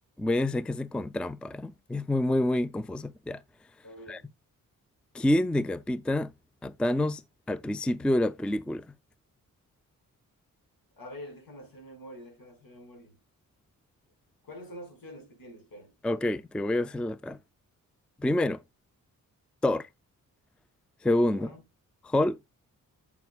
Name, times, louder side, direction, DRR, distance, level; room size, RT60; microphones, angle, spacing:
voice 1, 0.2-3.4 4.1-4.2 5.1-6.3 6.6-7.2 7.5-8.9 16.0-17.4 18.2-18.6 19.6-19.9 21.0-21.5 22.0-22.4, left 1 dB, 5° left, 0.4 m, -27 dB
voice 2, 3.8-4.3 11.0-13.2 14.4-15.9 21.3-21.6, equal, 75° left, 5.1 m, -46 dB
9.1 x 7.2 x 2.3 m
cardioid pair, 65°, 35 cm